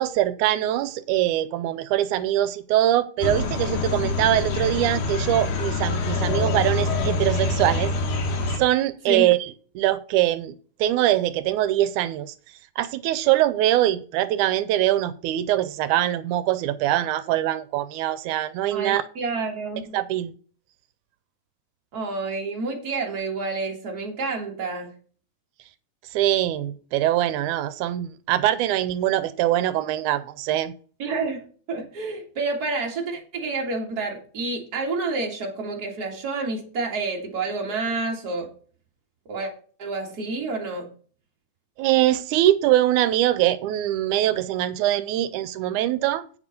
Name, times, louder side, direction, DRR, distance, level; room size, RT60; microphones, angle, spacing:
voice 1, 0.0-7.9 8.6-9.5 9.8-10.5 10.8-12.3 12.8-19.0 19.9-20.3 26.1-30.7 41.8-46.2, right 13 dB, 90° right, 2.1 m, -23 dB
sound 1, 3.2-8.6, left 3 dB, 75° left, 2.9 m, -25 dB
voice 2, 18.7-20.0 21.9-24.9 31.0-38.5 39.3-39.5 39.8-40.9, right 3 dB, 35° right, 2.3 m, -29 dB
8.7 x 6.1 x 5.2 m
omnidirectional pair, 3.5 m